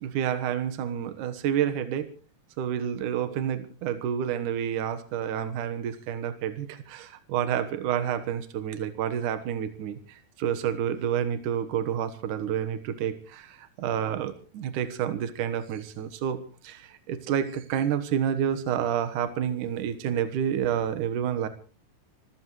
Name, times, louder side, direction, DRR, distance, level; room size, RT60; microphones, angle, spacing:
voice 1, 0.0-2.1 2.6-21.5, right 9 dB, 70° right, 10 dB, 2.7 m, -29 dB
24.5 x 16.0 x 3.2 m, 0.36 s
omnidirectional pair, 3.9 m